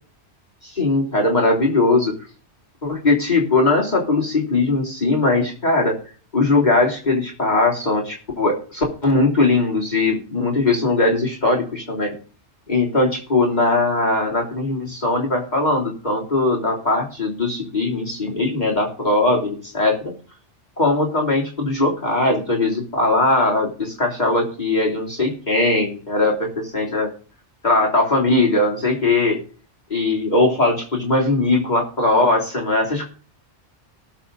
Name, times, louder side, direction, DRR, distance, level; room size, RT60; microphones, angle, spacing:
voice 1, 0.6-2.1 2.8-5.9 6.3-12.1 12.7-20.1 20.8-27.1 27.6-29.4 29.9-33.1, left 2 dB, 40° left, -3 dB, 3.5 m, -20 dB
19.0 x 7.1 x 4.0 m, 0.39 s
omnidirectional pair, 1.2 m